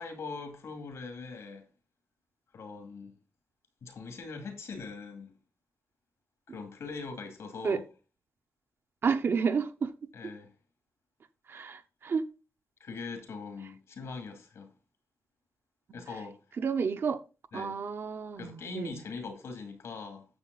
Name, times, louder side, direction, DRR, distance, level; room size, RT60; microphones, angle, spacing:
voice 1, 0.0-1.6 2.5-3.1 3.8-5.3 6.5-7.8 10.1-10.5 12.8-14.7 15.9-16.4 17.5-17.8 18.4-20.3, left 4 dB, 85° left, 2.5 m, -41 dB
voice 2, 9.0-9.9 11.5-12.2 15.9-16.0 16.6-17.2 17.5-19.0, right 5 dB, 55° right, 0.8 m, -31 dB
9.7 x 7.1 x 4.0 m
wide cardioid pair, 150°, 5 cm